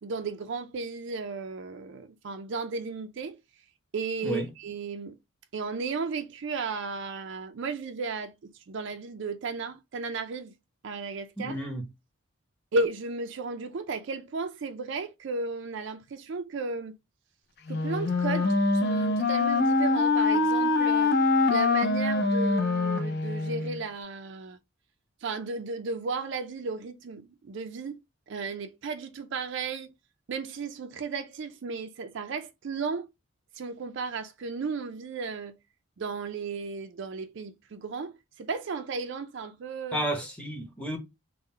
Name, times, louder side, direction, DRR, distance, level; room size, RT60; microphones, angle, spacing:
voice 1, 0.0-3.4 3.9-5.2 5.5-10.5 10.8-11.6 12.7-17.0 17.7-21.2 21.5-24.6 25.2-28.0 28.3-29.9 30.3-33.1 33.5-35.6 36.0-40.0, right 4 dB, 55° right, 0.4 m, -34 dB
voice 2, 11.4-11.8 39.9-41.0, right 1 dB, 5° left, 0.8 m, -31 dB
Wind instrument woodwind instrument, 17.7-23.8, left 3 dB, 50° left, 0.5 m, -24 dB
3.7 x 2.1 x 4.2 m
head